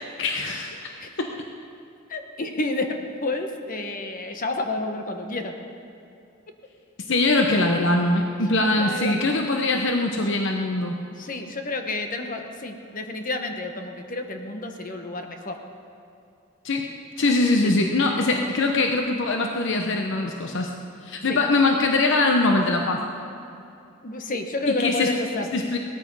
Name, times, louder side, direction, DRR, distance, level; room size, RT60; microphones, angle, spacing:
voice 1, 0.2-1.3 7.1-11.0 16.6-16.9 17.2-20.7 21.0-23.0 24.7-25.1 25.5-25.8, left 2 dB, 60° left, 3 dB, 0.9 m, -22 dB
voice 2, 2.1-5.5 8.8-9.2 11.2-15.6 17.6-17.9 21.3-21.4 24.0-25.4, left 2 dB, 40° left, 5 dB, 1.2 m, -30 dB
18.0 x 13.5 x 5.5 m, 2.6 s
head